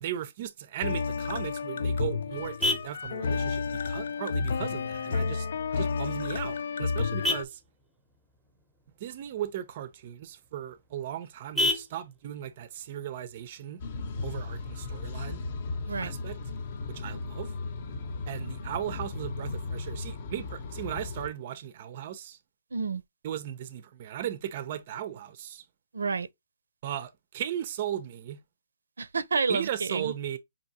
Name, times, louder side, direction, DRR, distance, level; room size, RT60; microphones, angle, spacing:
voice 1, 0.0-5.5 5.7-7.6 9.0-13.8 14.2-15.4 16.0-16.4 16.9-17.5 18.3-22.4 23.2-25.6 26.8-28.4 29.5-30.4, right 11 dB, 35° right, 0.5 m, -37 dB
sound 1, 0.8-7.4, left 5 dB, 55° left, 0.3 m, -31 dB
Vehicle horn car horn honking, 1.3-14.3, left 1 dB, ahead, 0.7 m, -37 dB
sound 2, 13.8-21.3, left 3 dB, 35° left, 0.7 m, -36 dB
voice 2, 22.7-23.0 25.9-26.3 29.0-30.1, right 4 dB, 85° right, 0.6 m, -29 dB
5.2 x 2.8 x 2.7 m
hypercardioid pair, 165°, 0 cm